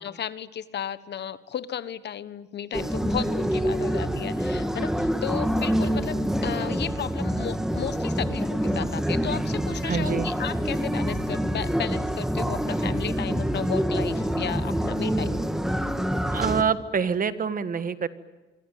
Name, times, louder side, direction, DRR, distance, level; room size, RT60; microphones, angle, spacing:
voice 1, 0.0-15.4, left 9 dB, 60° left, 14 dB, 1.3 m, -34 dB
sound 1, 2.7-16.6, equal, ahead, 2.1 m, -26 dB
voice 2, 9.8-10.3 16.3-18.1, right 6 dB, 45° right, 11 dB, 1.6 m, -26 dB
25.5 x 24.0 x 9.3 m, 1.1 s
cardioid pair, 90°, 20 cm